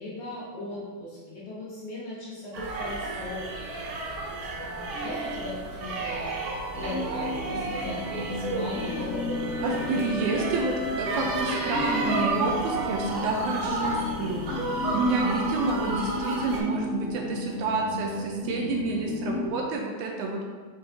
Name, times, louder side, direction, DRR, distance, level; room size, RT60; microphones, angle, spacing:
voice 1, 0.0-4.2 4.6-6.4 6.7-9.4 15.0-15.4, left 1 dB, 65° left, -6 dB, 1.8 m, -39 dB
sound 1, 2.5-16.6, right 2 dB, 65° right, 2.0 m, -32 dB
sound 2, 6.7-19.5, left 3 dB, 90° left, 1.2 m, -34 dB
voice 2, 9.6-20.5, right 3 dB, 80° right, 1 dB, 1.9 m, -29 dB
6.6 x 5.8 x 2.6 m, 1.5 s
omnidirectional pair, 3.7 m